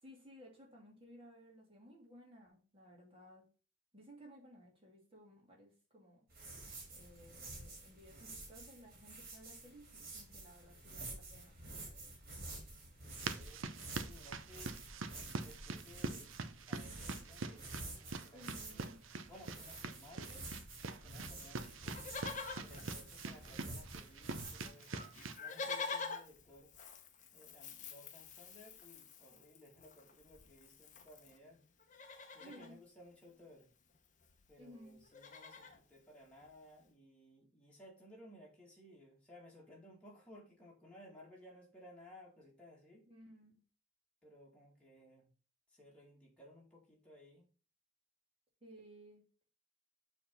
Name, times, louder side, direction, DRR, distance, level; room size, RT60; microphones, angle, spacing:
voice 1, 0.0-3.5 3.9-6.3 6.9-12.2 15.3-15.4 18.3-19.0 32.4-32.8 34.6-35.0 43.0-43.6 48.6-49.5, equal, 30° right, -2 dB, 2.5 m, -58 dB
sound 1, 6.3-24.7, right 2 dB, 50° right, 2.8 m, -50 dB
voice 2, 13.1-13.8 14.0-14.8 15.4-16.3 16.7-17.7 18.0-18.8 19.3-20.5 20.8-22.0 22.6-26.7 27.3-31.6 32.3-33.7 34.5-43.1 44.2-45.3 45.7-47.5, left 1 dB, 5° left, -4 dB, 2.2 m, -59 dB
sound 2, 13.1-25.4, right 4 dB, 80° right, 0.6 m, -45 dB
Livestock farm animals working animals, 21.8-23.8 24.1-24.2 24.4-31.4 31.8-32.7 33.9-34.0 34.2-34.5 34.8-35.8 36.4-36.5, left 4 dB, 40° left, 0.9 m, -47 dB
6.9 x 3.6 x 5.5 m, 0.35 s
head